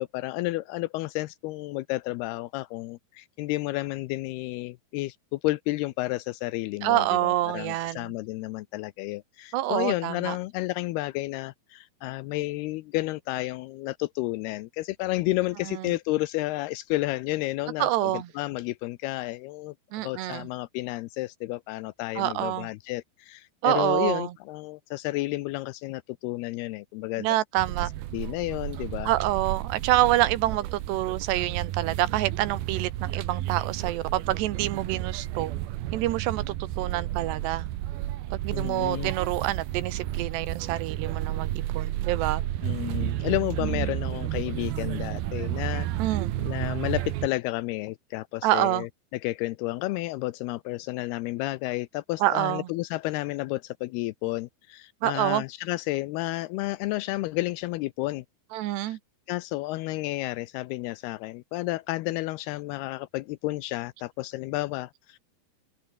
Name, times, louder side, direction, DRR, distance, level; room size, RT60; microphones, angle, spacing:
voice 1, 0.0-27.3 27.8-29.1 38.5-39.1 42.6-58.3 58.8-59.0 59.3-65.2, left 19 dB, 85° left, 2.6 m, -31 dB
voice 2, 6.8-8.1 9.5-10.4 15.7-15.9 17.8-18.3 19.9-20.5 22.2-22.7 23.6-24.3 27.2-27.9 29.1-35.6 35.9-37.7 38.4-42.4 43.6-43.9 46.0-46.3 48.4-48.9 52.2-52.7 55.0-55.4 58.5-59.0, right 15 dB, 90° right, 3.4 m, -27 dB
sound 1, 27.6-47.3, right 14 dB, 70° right, 2.9 m, -32 dB
omnidirectional pair, 4.7 m